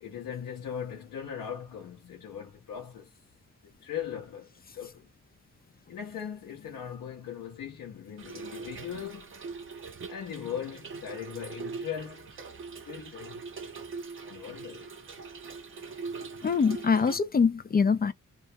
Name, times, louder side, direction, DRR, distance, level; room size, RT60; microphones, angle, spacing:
voice 1, 0.0-3.2 3.8-4.5 4.7-5.0 5.9-9.4 10.1-12.4 12.8-13.4 14.2-14.9, left 8 dB, 90° left, 0.8 m, -39 dB
Trickle dribble / Fill (with liquid), 8.2-17.2, right 4 dB, 40° right, 0.6 m, -42 dB
voice 2, 16.4-18.1, left 5 dB, 30° left, 0.3 m, -24 dB
2.4 x 2.0 x 2.7 m
cardioid pair, 100°, 32 cm